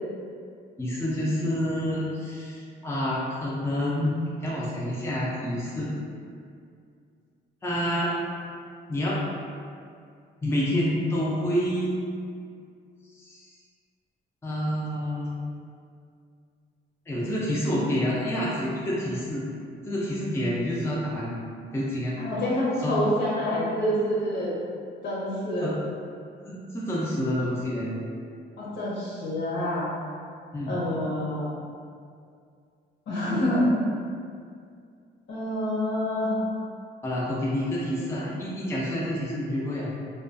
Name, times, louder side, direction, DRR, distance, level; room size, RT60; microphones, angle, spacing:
voice 1, 0.8-5.9 7.6-8.1 8.9-9.2 10.4-12.0 13.2-13.5 14.4-15.4 17.1-19.4 19.9-21.4 21.7-22.1 22.8-22.9 25.6-25.7 26.4-28.0 30.5-30.8 37.0-39.9, equal, 15° left, -7 dB, 0.5 m, -28 dB
voice 2, 22.2-24.6 25.0-25.7 28.6-29.9 30.6-31.5 33.1-33.6 35.3-36.4, left 1 dB, 65° left, -7 dB, 0.9 m, -27 dB
2.3 x 2.3 x 2.5 m, 2.3 s
cardioid pair, 90°, 20 cm